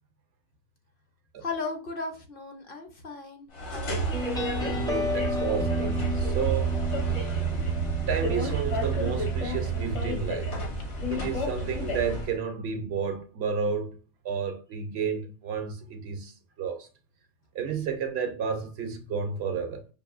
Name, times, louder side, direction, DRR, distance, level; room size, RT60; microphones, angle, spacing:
voice 1, 1.4-4.2, left 4 dB, 55° left, 0.8 m, -36 dB
sound 1, 3.5-12.4, equal, 70° left, 1.5 m, -31 dB
sound 2, 4.1-11.3, right 5 dB, 5° left, 0.4 m, -31 dB
voice 2, 4.6-6.7 8.1-10.5 11.1-14.0 14.2-16.3 16.6-16.9 17.5-19.8, right 6 dB, 65° right, 0.8 m, -31 dB
5.3 x 2.5 x 2.4 m
omnidirectional pair, 1.2 m